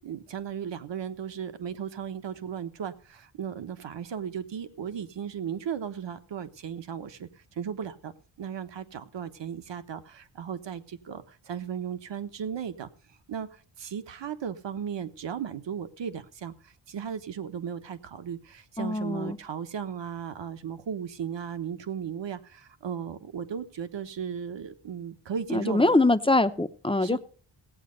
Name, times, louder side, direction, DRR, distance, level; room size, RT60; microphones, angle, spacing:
voice 1, 0.0-8.1 8.4-12.9 13.3-26.0 27.0-27.2, right 8 dB, 60° right, 11 dB, 1.2 m, -36 dB
voice 2, 18.8-19.4 25.5-27.2, left 2 dB, 10° left, 11 dB, 0.6 m, -23 dB
17.0 x 8.6 x 5.2 m, 0.41 s
wide cardioid pair, 145°, 48 cm